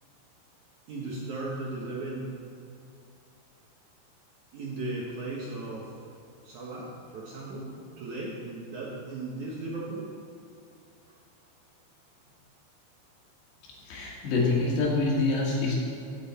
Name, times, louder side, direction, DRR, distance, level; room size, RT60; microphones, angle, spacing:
voice 1, 0.9-2.5 4.5-5.9 6.4-10.1, right 2 dB, 65° right, -4 dB, 2.1 m, -36 dB
voice 2, 13.6-15.8, left 3 dB, 80° left, -4 dB, 4.4 m, -26 dB
16.0 x 8.0 x 4.3 m, 2.5 s
omnidirectional pair, 4.9 m